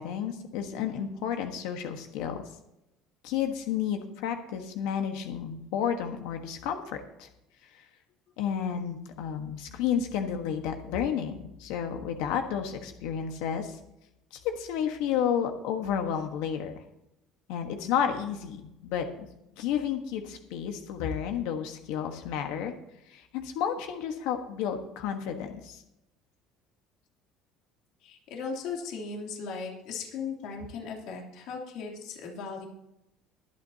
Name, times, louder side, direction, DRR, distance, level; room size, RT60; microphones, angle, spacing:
voice 1, 0.0-2.4 3.2-7.3 7.7-7.8 8.4-13.8 14.3-16.7 17.5-19.1 19.6-22.7 23.1-25.8, left 8 dB, 85° left, 5 dB, 1.3 m, -31 dB
voice 2, 28.0-32.7, left 5 dB, 70° left, 0 dB, 2.9 m, -37 dB
22.5 x 8.6 x 2.8 m, 0.87 s
cardioid pair, 135°, 0 cm